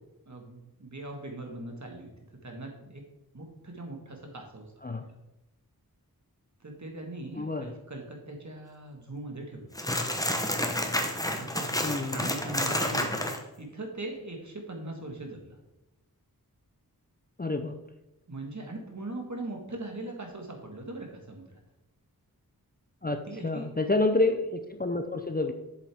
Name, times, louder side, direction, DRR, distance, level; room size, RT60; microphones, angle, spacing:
voice 1, 0.2-2.1 2.4-3.0 3.3-4.7 5.0-5.1 6.6-9.9 11.4-11.7 12.1-13.3 13.6-15.6 18.3-21.6 23.3-23.7, right 2 dB, 50° right, 2 dB, 1.7 m, -40 dB
voice 2, 7.3-7.7 11.8-12.3 17.4-17.7 23.0-25.5, left 2 dB, 25° left, 6 dB, 0.5 m, -28 dB
sound 1, 9.7-13.4, left 1 dB, 10° left, 0.9 m, -29 dB
7.6 x 7.2 x 3.5 m, 0.95 s
wide cardioid pair, 70°, 37 cm